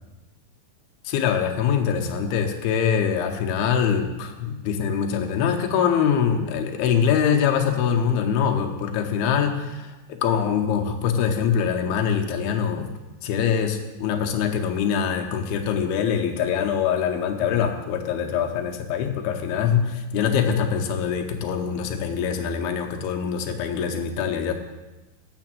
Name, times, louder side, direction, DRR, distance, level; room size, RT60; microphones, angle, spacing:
voice 1, 1.1-12.9 13.2-24.5, left 7 dB, 80° left, 3 dB, 2.7 m, -24 dB
7.0 x 6.8 x 7.5 m, 1.1 s
omnidirectional pair, 4.7 m